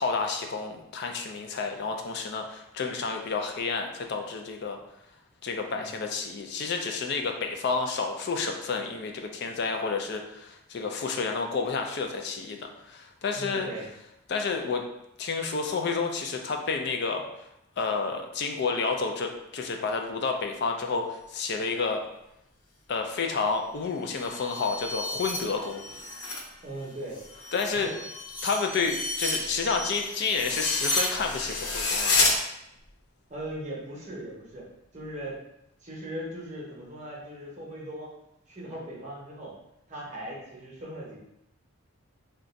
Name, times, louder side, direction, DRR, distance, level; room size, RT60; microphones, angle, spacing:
voice 1, 0.0-4.8 5.4-12.6 12.9-13.7 14.3-14.8 15.2-17.2 17.8-22.0 22.9-25.8 27.5-27.9 28.4-32.4, left 4 dB, 50° left, 3 dB, 0.3 m, -30 dB
voice 2, 13.3-13.8 26.6-27.2 27.7-27.9 33.3-34.7 34.9-35.4 35.8-38.1 38.5-39.5 39.9-41.2, right 1 dB, 35° right, -4 dB, 0.7 m, -39 dB
sound 1, 24.1-26.5 26.8-32.3, left 3 dB, 90° left, 0.6 m, -30 dB
2.5 x 2.2 x 3.9 m, 0.83 s
head